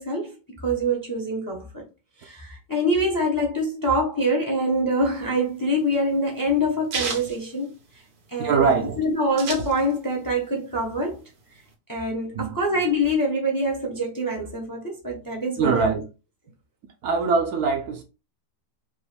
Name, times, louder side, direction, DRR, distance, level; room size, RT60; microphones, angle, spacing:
voice 1, 0.0-1.9 2.2-7.7 8.3-11.2 11.9-16.0, equal, 15° left, 0.8 m, -25 dB
sound 1, 5.2-8.3 8.7-8.8 8.9-10.2 10.6-11.7, right 4 dB, 85° right, 1.8 m, -33 dB
voice 2, 8.4-9.0 12.1-12.5 15.6-16.0 17.0-18.0, right 5 dB, 65° right, 1.2 m, -23 dB
5.1 x 2.7 x 3.3 m
omnidirectional pair, 1.8 m